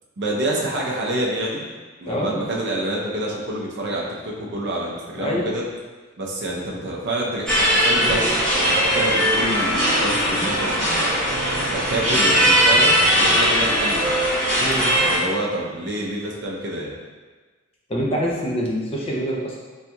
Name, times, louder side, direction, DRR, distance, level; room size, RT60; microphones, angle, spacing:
voice 1, 0.2-1.6 2.0-5.6 6.2-11.2 11.5-14.1 15.1-16.9, right 1 dB, 55° right, -2 dB, 0.6 m, -27 dB
voice 2, 2.1-2.4 5.2-5.4 14.6-14.9 17.9-19.6, equal, 25° left, -3 dB, 0.5 m, -25 dB
sound 1, 7.5-15.2, equal, 5° left, 1.0 m, -19 dB
4.1 x 2.7 x 2.3 m, 1.3 s
head